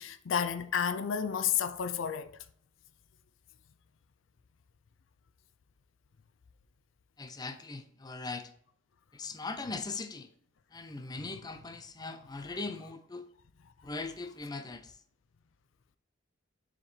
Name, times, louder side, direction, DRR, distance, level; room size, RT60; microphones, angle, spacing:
voice 1, 0.0-2.4, left 8 dB, 75° left, 0.5 m, -31 dB
voice 2, 7.2-8.5 9.1-10.3 10.7-13.2 13.8-15.0, left 3 dB, 20° left, 0.6 m, -40 dB
7.3 x 5.0 x 3.2 m
head